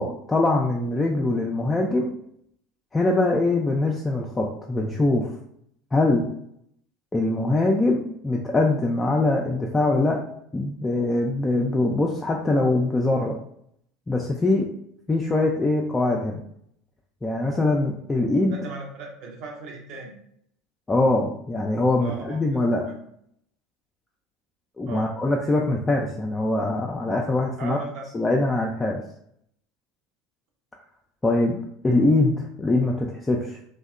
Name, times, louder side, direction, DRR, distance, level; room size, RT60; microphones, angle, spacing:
voice 1, 0.0-2.1 2.9-5.3 5.9-6.3 7.1-10.2 10.5-13.4 14.1-14.7 15.1-16.4 17.2-18.5 20.9-22.8 24.8-27.8 28.1-29.0 31.2-31.6 31.8-33.6, left 2 dB, 15° left, -1 dB, 0.3 m, -23 dB
voice 2, 18.5-20.2 22.0-22.6 22.9-23.0 24.9-25.1 27.6-28.1, right 3 dB, 50° right, 1 dB, 0.6 m, -37 dB
2.7 x 2.1 x 2.3 m, 0.70 s
figure-of-eight pair, 70°, 0 cm